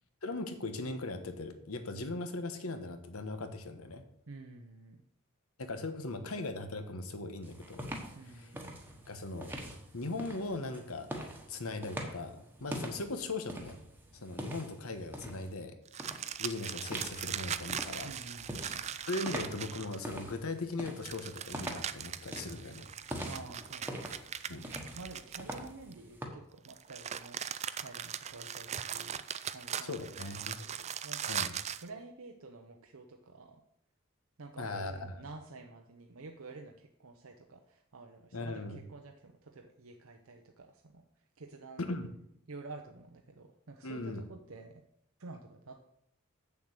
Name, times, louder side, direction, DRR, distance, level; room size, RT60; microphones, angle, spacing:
voice 1, 0.2-4.0 5.6-7.9 8.3-8.5 9.1-9.5 9.9-11.1 11.5-13.8 14.1-15.7 16.4-18.1 19.1-22.9 24.5-24.7 29.8-30.6 31.3-31.5 34.6-35.2 38.3-38.8 41.8-42.1 43.8-44.2, left 2 dB, 85° left, 8 dB, 1.2 m, -39 dB
voice 2, 4.3-5.0 8.1-8.8 18.0-18.9 23.2-24.0 24.5-31.4 31.8-33.6 34.4-41.0 41.4-41.9 42.5-44.8 45.2-45.8, right 3 dB, 75° right, 3 dB, 0.8 m, -50 dB
sound 1, 7.4-15.5 16.0-16.3 16.9-26.3, right 1 dB, 10° right, 1.2 m, -44 dB
sound 2, 15.9-20.2 21.0-25.9 26.7-31.9, right 9 dB, 30° right, 0.3 m, -40 dB
7.7 x 7.0 x 6.6 m, 0.76 s
head